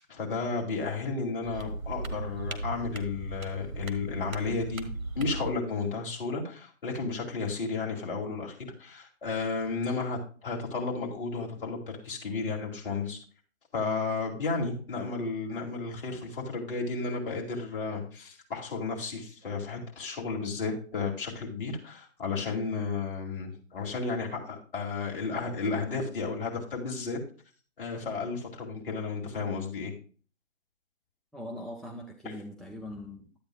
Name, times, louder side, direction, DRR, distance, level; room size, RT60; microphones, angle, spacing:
voice 1, 0.0-4.9 5.1-13.2 13.7-27.2 27.8-29.9, left 4 dB, 40° left, 2.6 m, -33 dB
sound 1, 1.4-5.5, right 2 dB, 70° right, 1.5 m, -37 dB
voice 2, 31.3-33.3, left 1 dB, ahead, 0.3 m, -41 dB
12.0 x 8.5 x 2.3 m
figure-of-eight pair, 145°, 41 cm